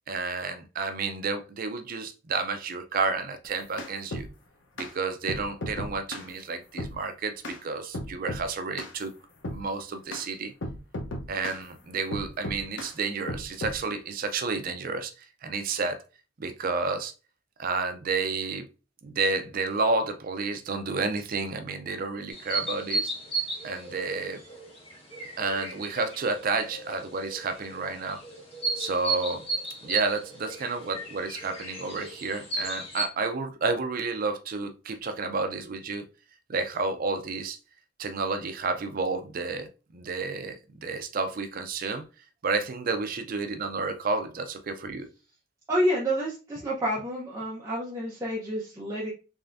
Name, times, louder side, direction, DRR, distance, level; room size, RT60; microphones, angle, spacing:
voice 1, 0.1-4.3 4.8-9.1 9.5-10.5 11.3-16.0 16.4-17.1 17.6-18.7 19.0-23.1 23.6-24.4 25.4-28.2 28.8-29.4 29.8-36.1 36.5-37.6 38.0-39.7 39.9-42.0 42.4-45.1, right 4 dB, 50° right, 0.5 m, -30 dB
sound 1, 3.4-4.3 4.8-4.9 5.3-6.3 6.8-7.0 7.4-7.6 7.9-8.5 8.8-9.0 9.4-9.6 10.1-10.2 10.6-11.6 12.1-12.9 13.3-13.8, left 1 dB, 90° left, 0.8 m, -35 dB
sound 2, 22.3-33.1, right 3 dB, 30° left, 1.2 m, -34 dB
voice 2, 45.7-49.1, equal, 15° right, 0.8 m, -29 dB
3.6 x 3.3 x 2.5 m
head